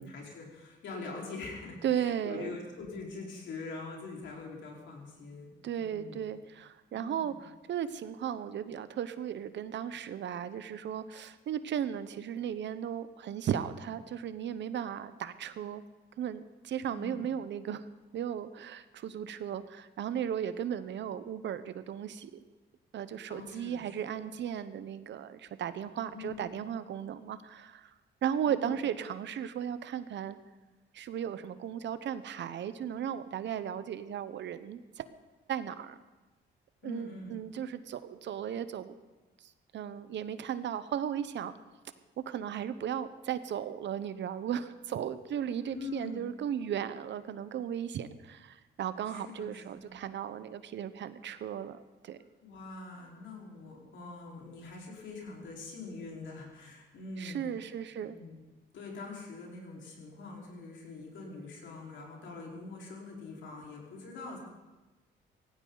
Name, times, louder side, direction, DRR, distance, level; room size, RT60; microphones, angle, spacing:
voice 1, 0.0-5.5 5.8-6.2 6.9-7.4 16.9-17.2 23.3-24.1 26.1-26.5 28.4-28.7 36.8-37.4 45.7-46.2 49.1-50.0 52.4-57.4 58.0-58.4 58.7-64.4, left 3 dB, 70° left, -2 dB, 4.5 m, -44 dB
voice 2, 1.8-2.6 5.6-15.8 16.2-17.9 18.1-22.3 22.9-27.9 28.2-30.4 30.9-35.0 35.5-36.0 36.8-38.9 39.4-41.5 42.3-52.2 57.2-58.2, right 9 dB, 65° right, 13 dB, 0.9 m, -36 dB
17.5 x 16.0 x 4.0 m, 1.1 s
cardioid pair, 90°, 20 cm